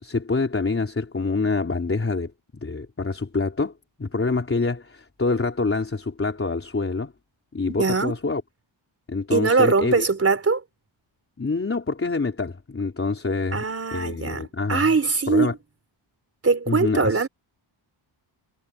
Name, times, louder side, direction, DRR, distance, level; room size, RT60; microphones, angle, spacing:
voice 1, 0.0-2.3 2.6-3.7 4.0-7.1 7.5-8.4 9.1-10.1 11.4-13.6 13.9-14.9 15.3-15.5 16.7-17.3, left 3 dB, 25° left, 3.8 m, -26 dB
voice 2, 7.8-8.1 9.3-10.6 13.5-15.6 16.4-17.3, right 4 dB, 30° right, 4.4 m, -21 dB
wide cardioid pair, 135°, 49 cm